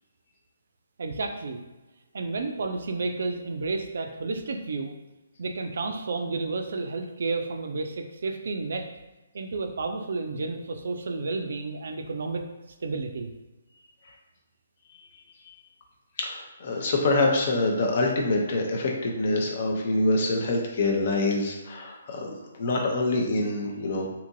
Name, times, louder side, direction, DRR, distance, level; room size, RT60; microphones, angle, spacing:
voice 1, 1.0-1.6 2.1-4.9 5.4-8.9 9.3-12.4 12.8-13.3, right 3 dB, 60° right, 5 dB, 0.3 m, -31 dB
voice 2, 16.2-22.3 22.5-24.1, left 2 dB, 45° left, 0 dB, 0.6 m, -25 dB
2.8 x 2.5 x 2.5 m, 1.1 s
figure-of-eight pair, 135°, 0 cm